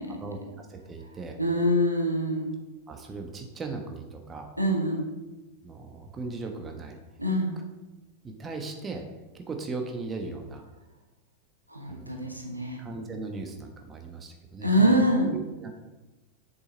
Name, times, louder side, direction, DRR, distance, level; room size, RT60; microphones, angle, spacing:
voice 1, 0.0-1.4 2.9-4.5 5.6-7.0 8.2-9.0 9.3-10.7 11.9-12.2 12.8-15.0 15.3-15.7, right 3 dB, 20° right, 3 dB, 1.2 m, -38 dB
voice 2, 1.4-2.5 4.6-5.0 7.2-7.6 11.7-12.8 14.6-15.4, equal, 90° right, 1 dB, 1.3 m, -25 dB
7.9 x 7.0 x 4.1 m, 1.1 s
figure-of-eight pair, 90°, 0 cm